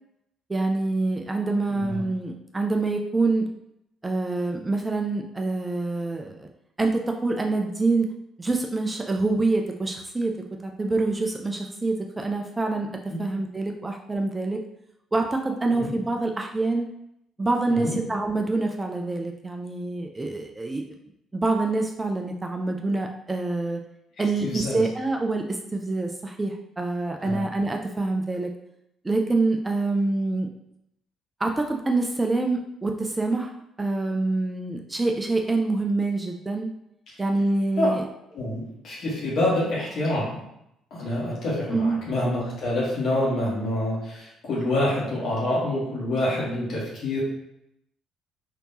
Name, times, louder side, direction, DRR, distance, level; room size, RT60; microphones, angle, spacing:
voice 1, 0.5-3.5 4.0-6.5 6.8-8.1 8.4-12.9 13.2-14.6 15.1-16.9 17.4-20.8 21.3-23.8 24.2-28.5 29.0-30.5 31.4-33.5 33.8-36.7 37.2-38.0 41.7-42.0, right 2 dB, 20° right, 3 dB, 0.4 m, -26 dB
voice 2, 1.7-2.0 13.1-13.2 15.7-15.9 17.7-18.0 24.4-24.8 27.2-27.4 37.8-37.9 38.3-40.4 40.9-47.2, left 1 dB, 55° left, -6 dB, 1.2 m, -27 dB
3.3 x 2.9 x 2.7 m, 0.80 s
hypercardioid pair, 50°, 0 cm